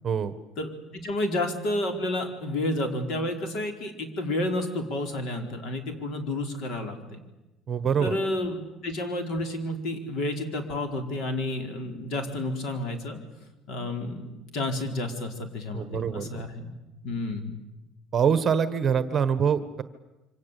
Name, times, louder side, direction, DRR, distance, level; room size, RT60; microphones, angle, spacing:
voice 1, 0.6-7.2 8.0-13.2 13.7-16.7 17.0-17.6, left 1 dB, 55° left, 6 dB, 4.6 m, -30 dB
voice 2, 7.7-8.2 15.7-16.4 18.1-19.8, right 7 dB, 30° right, 12 dB, 1.4 m, -25 dB
27.0 x 25.0 x 8.4 m, 1.0 s
cardioid pair, 155°, 0 cm